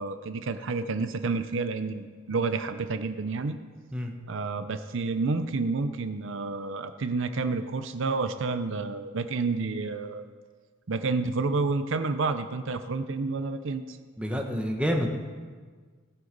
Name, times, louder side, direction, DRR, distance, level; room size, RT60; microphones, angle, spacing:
voice 1, 0.0-3.6 4.3-10.2 10.9-14.0, right 3 dB, 65° right, 10 dB, 0.6 m, -29 dB
voice 2, 14.2-15.1, equal, 5° right, 2 dB, 1.2 m, -28 dB
18.0 x 7.8 x 5.3 m, 1.5 s
head